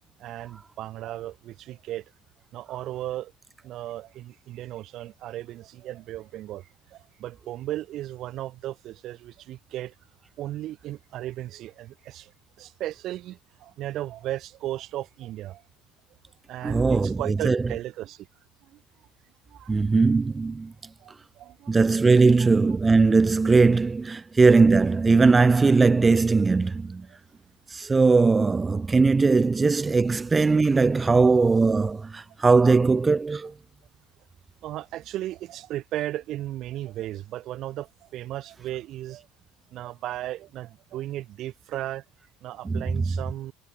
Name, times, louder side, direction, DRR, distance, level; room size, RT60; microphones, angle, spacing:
voice 1, 0.2-2.0 2.5-3.3 3.6-9.9 10.4-12.3 12.6-15.6 16.5-18.3 18.7-18.8 19.5-19.7 21.0-22.5 24.6-24.8 27.1-27.2 30.0-30.1 32.5-32.8 34.6-39.3 39.7-42.0 42.4-43.5, right 14 dB, 55° right, 5.6 m, -36 dB
voice 2, 16.6-17.6 19.7-20.7 21.7-27.1 27.7-33.5 42.6-43.0, right 4 dB, 20° right, 0.3 m, -20 dB
supercardioid pair, 105°, 0 cm